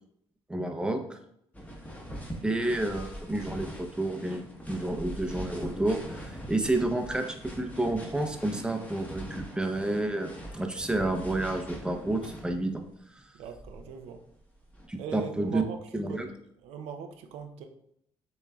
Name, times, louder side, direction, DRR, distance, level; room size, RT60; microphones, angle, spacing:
voice 1, 0.5-1.2 2.4-12.8 13.1-13.3 14.9-15.6 15.9-16.3, right 2 dB, 10° right, 4 dB, 0.6 m, -30 dB
sound 1, 1.5-12.8 13.4-14.9, right 1 dB, 15° left, 1.0 m, -42 dB
voice 2, 13.4-14.2 15.0-15.8 16.1-16.2 16.6-17.7, right 6 dB, 90° right, 5 dB, 0.5 m, -40 dB
6.8 x 3.1 x 2.3 m, 0.73 s
cardioid pair, 85°, 10 cm